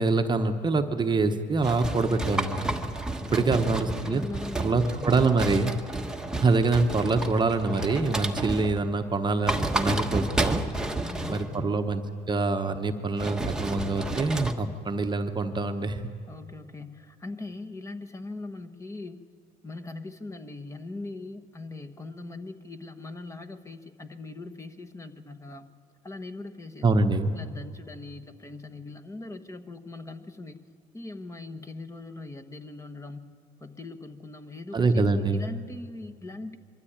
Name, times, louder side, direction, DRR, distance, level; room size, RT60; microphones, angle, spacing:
voice 1, 0.0-2.7 3.2-4.2 4.6-5.7 6.4-10.6 11.3-12.0 12.3-16.0 26.8-27.3 34.7-35.5, right 3 dB, 25° right, 6 dB, 1.0 m, -25 dB
sound 1, 1.6-8.9 9.3-11.6 13.2-14.5, right 1 dB, 5° right, 1.1 m, -31 dB
voice 2, 3.3-5.2 10.9-11.9 16.3-19.2 19.6-25.7 26.0-26.9 27.3-30.6 30.9-36.6, left 2 dB, 15° left, 7 dB, 1.2 m, -40 dB
23.0 x 13.0 x 8.7 m, 2.4 s
cardioid pair, 110°, 17 cm